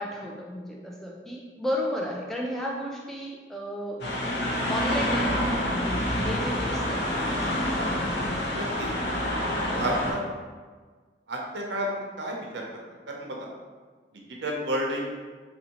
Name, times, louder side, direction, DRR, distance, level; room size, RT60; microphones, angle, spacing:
voice 1, 0.0-4.0 4.7-7.5, equal, ahead, -3 dB, 0.4 m, -33 dB
sound 1, 4.0-10.1, left 1 dB, 65° left, 0.7 m, -27 dB
voice 2, 8.5-8.9 9.4-10.3 11.3-13.5 14.4-15.0, equal, 75° right, -1 dB, 0.6 m, -31 dB
4.0 x 2.6 x 2.9 m, 1.5 s
head